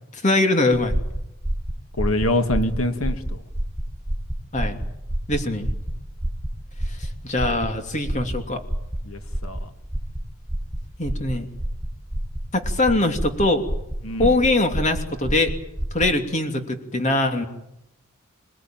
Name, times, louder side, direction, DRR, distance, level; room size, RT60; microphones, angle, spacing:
voice 1, 0.1-1.0 4.5-4.8 5.3-5.7 6.9-8.6 11.0-11.5 12.5-13.7 14.2-15.5 15.9-17.4, left 2 dB, 35° left, 6 dB, 2.8 m, -22 dB
sound 1, 0.7-16.2, right 1 dB, 10° right, 3.3 m, -29 dB
voice 2, 2.0-3.4 9.1-9.6 14.0-14.3, left 1 dB, 90° left, 8 dB, 2.2 m, -25 dB
27.5 x 19.0 x 9.1 m, 0.86 s
head